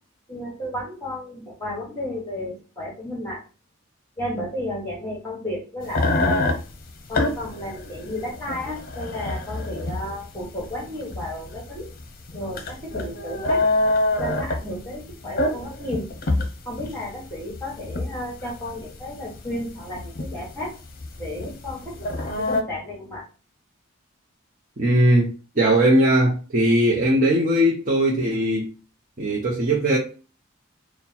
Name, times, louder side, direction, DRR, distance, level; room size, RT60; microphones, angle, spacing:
voice 1, 0.3-3.4 4.2-6.6 7.1-11.9 12.3-13.6 14.2-16.1 16.6-20.7 21.2-23.2, left 1 dB, 15° left, 1.3 m, -33 dB
sound 1, 5.9-22.6, left 2 dB, 45° left, 0.7 m, -27 dB
voice 2, 24.8-28.7 29.2-30.0, right 1 dB, 40° right, 0.7 m, -19 dB
4.2 x 2.2 x 4.1 m
head